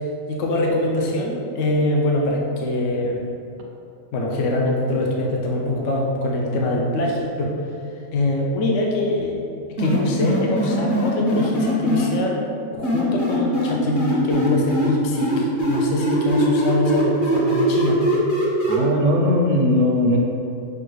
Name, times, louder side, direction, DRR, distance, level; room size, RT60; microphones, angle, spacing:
voice 1, 0.3-3.2 4.1-7.5 8.1-9.5 9.8-12.4 12.7-18.0, left 1 dB, 65° left, -1 dB, 0.8 m, -23 dB
sound 1, 9.8-12.1 12.8-14.9 15.2-18.8, equal, 40° left, 1.0 m, -21 dB
voice 2, 18.7-20.2, left 1 dB, 75° right, 0 dB, 1.0 m, -19 dB
6.8 x 2.3 x 3.2 m, 2.5 s
omnidirectional pair, 1.5 m